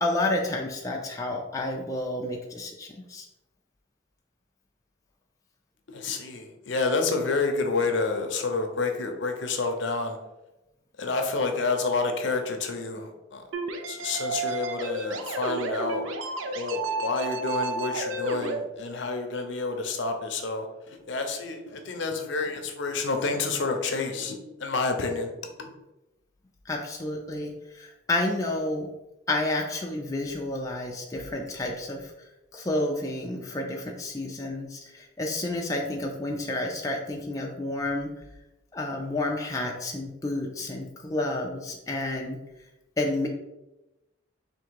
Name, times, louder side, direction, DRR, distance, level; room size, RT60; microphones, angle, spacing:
voice 1, 0.0-3.3 26.7-28.9 29.3-32.1 32.5-38.1 38.7-42.4 43.0-43.3, left 2 dB, 15° left, 0 dB, 0.4 m, -30 dB
voice 2, 5.9-10.2 11.0-13.4 13.9-16.2 16.5-25.3 25.6-25.7, left 3 dB, 65° left, 5 dB, 0.6 m, -29 dB
sound 1, 13.5-18.6, right 3 dB, 80° right, 0.5 m, -32 dB
3.6 x 2.7 x 4.6 m, 0.96 s
head